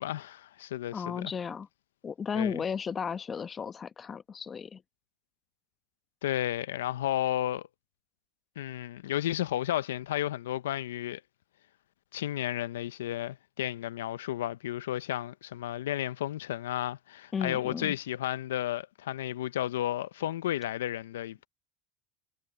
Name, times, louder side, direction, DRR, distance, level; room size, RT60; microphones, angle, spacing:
voice 1, 0.0-1.3 2.3-2.6 6.2-7.7 8.6-11.2 12.1-21.5, left 13 dB, 85° left, 0.7 m, -33 dB
voice 2, 0.9-1.7 2.0-4.8 17.3-17.9, left 6 dB, 30° left, 1.1 m, -34 dB
hypercardioid pair, 85°, 0 cm